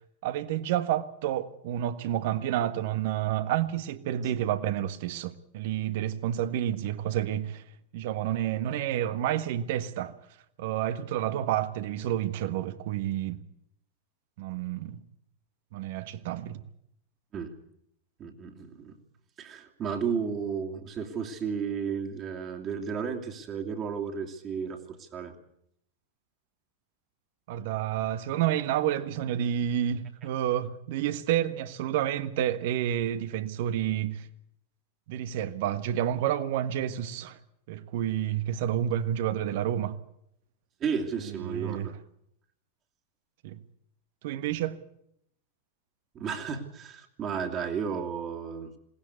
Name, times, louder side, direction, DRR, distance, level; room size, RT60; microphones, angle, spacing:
voice 1, 0.2-7.6 7.9-10.2 10.6-13.4 14.4-15.0 15.7-16.6 27.5-34.3 35.1-37.4 37.7-40.0 41.3-41.9 43.4-43.6 44.2-44.8, right 11 dB, 50° right, 1.3 m, -29 dB
voice 2, 18.2-19.0 19.4-25.3 40.8-42.0 46.1-48.7, right 6 dB, 30° right, 2.7 m, -33 dB
21.0 x 18.5 x 8.2 m
figure-of-eight pair, 90°, 0 cm